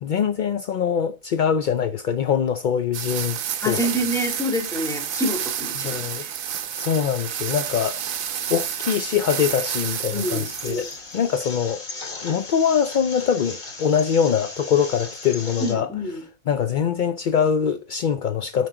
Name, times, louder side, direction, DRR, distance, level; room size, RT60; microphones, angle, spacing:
voice 1, 0.0-3.4 3.6-3.8 5.7-6.2 6.8-10.9 11.1-11.8 12.2-15.9 16.5-18.7, left 7 dB, 60° left, 0.5 m, -23 dB
sound 1, 2.9-10.9, right 9 dB, 80° right, 1.2 m, -30 dB
voice 2, 3.6-6.3 10.1-10.8 15.6-16.2, equal, ahead, 2.6 m, -27 dB
sound 2, 7.6-15.7, left 3 dB, 85° left, 2.7 m, -38 dB
9.3 x 5.9 x 3.8 m
omnidirectional pair, 1.4 m